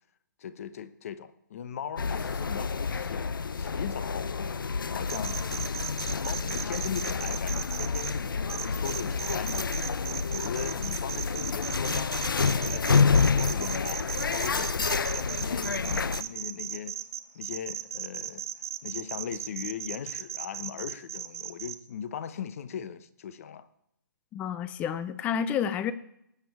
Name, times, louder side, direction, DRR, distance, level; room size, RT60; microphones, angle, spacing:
voice 1, 0.4-3.3 3.6-4.7 4.9-5.4 6.2-9.8 10.3-14.0 14.3-17.0 17.3-18.4 18.8-23.7, left 8 dB, 45° left, 0.9 m, -39 dB
sound 1, 2.0-16.2, left 5 dB, 85° left, 0.6 m, -29 dB
sound 2, 5.1-8.1 8.5-21.8, right 10 dB, 45° right, 0.9 m, -36 dB
voice 2, 24.3-25.9, left 8 dB, 15° left, 0.5 m, -30 dB
19.5 x 7.1 x 4.7 m
hypercardioid pair, 150°, 11 cm